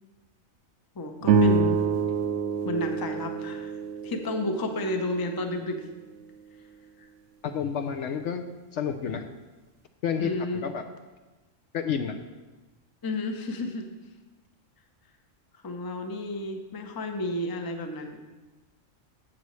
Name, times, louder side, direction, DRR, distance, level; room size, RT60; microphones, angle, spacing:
voice 1, 0.9-1.8 2.6-3.8 4.0-5.8 7.0-7.1 10.2-10.7 13.0-13.9 15.6-18.2, left 1 dB, 25° left, 4 dB, 0.6 m, -31 dB
sound 1, 1.2-5.7, right 5 dB, 65° right, 0.9 m, -27 dB
voice 2, 7.4-8.4 8.7-9.3 10.0-10.4 10.6-10.8 11.7-12.2, left 7 dB, 65° left, 7 dB, 0.8 m, -29 dB
12.0 x 8.0 x 3.2 m, 1.2 s
omnidirectional pair, 1.4 m